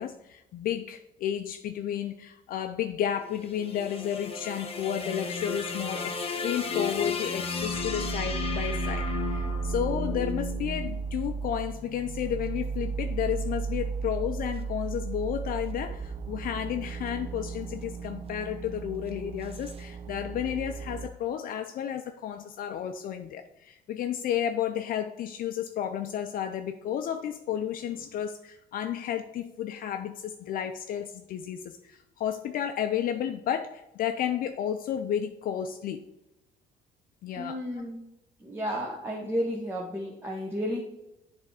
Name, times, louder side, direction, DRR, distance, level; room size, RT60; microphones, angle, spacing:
voice 1, 0.0-36.0 37.2-37.6, left 9 dB, 55° left, 7 dB, 0.5 m, -32 dB
sound 1, 3.2-11.5, left 5 dB, 35° left, 1.0 m, -34 dB
sound 2, 7.6-21.1, right 5 dB, 35° right, 0.4 m, -35 dB
voice 2, 37.4-38.0 38.4-40.8, equal, 15° right, -3 dB, 1.1 m, -32 dB
7.7 x 3.4 x 4.8 m, 0.91 s
cardioid pair, 110°, 17 cm